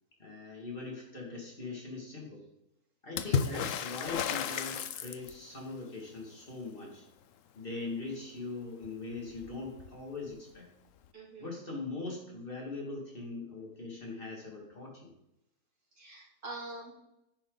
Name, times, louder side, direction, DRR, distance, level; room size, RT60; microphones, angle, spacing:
voice 1, 0.2-2.4 3.0-7.0 7.5-10.7 11.4-15.1, left 3 dB, 35° left, -2 dB, 2.6 m, -41 dB
Water / Splash splatter, 3.2-5.6 8.8-8.9 9.2-10.0 11.0-11.1, left 7 dB, 65° left, 1.0 m, -33 dB
voice 2, 11.1-11.5 16.0-16.9, right 2 dB, 75° right, -4 dB, 3.5 m, -44 dB
10.5 x 8.7 x 4.0 m, 0.82 s
omnidirectional pair, 1.6 m